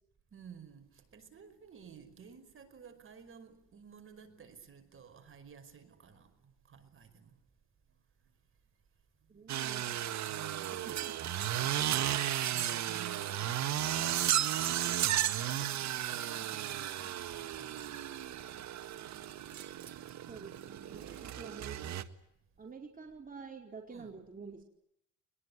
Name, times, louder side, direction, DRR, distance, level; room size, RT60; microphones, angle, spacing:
voice 1, 0.3-7.4 7.9-8.0 8.3-8.4 10.3-11.0 12.5-15.5 15.8-18.3 20.9-21.4 23.9-24.2, right 7 dB, 45° right, 5.3 m, -54 dB
voice 2, 9.3-10.2 10.7-11.2 20.3-22.0 22.6-24.6, right 5 dB, 30° right, 4.6 m, -49 dB
sound 1, 9.5-22.0, right 11 dB, 65° right, 1.6 m, -34 dB
24.0 x 22.0 x 9.7 m
cardioid pair, 90°, 30 cm